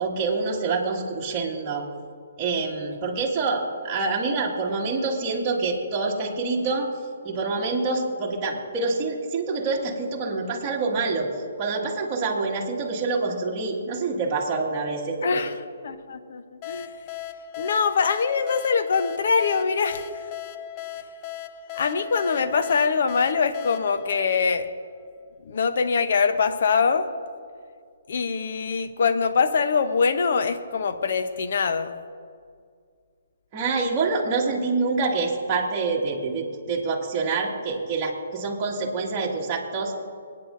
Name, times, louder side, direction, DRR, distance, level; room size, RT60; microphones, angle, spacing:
voice 1, 0.0-1.9 2.4-6.9 7.2-11.3 11.6-15.4 33.5-39.9, right 3 dB, 20° right, -3 dB, 1.9 m, -26 dB
voice 2, 15.2-15.6 15.8-16.9 17.6-20.3 21.7-24.7 25.4-27.1 28.1-32.0, left 5 dB, 60° left, 10 dB, 0.8 m, -23 dB
sound 1, 16.6-25.1, left 11 dB, 25° left, 0.4 m, -38 dB
27.0 x 9.5 x 2.6 m, 2.1 s
hypercardioid pair, 165°, 0 cm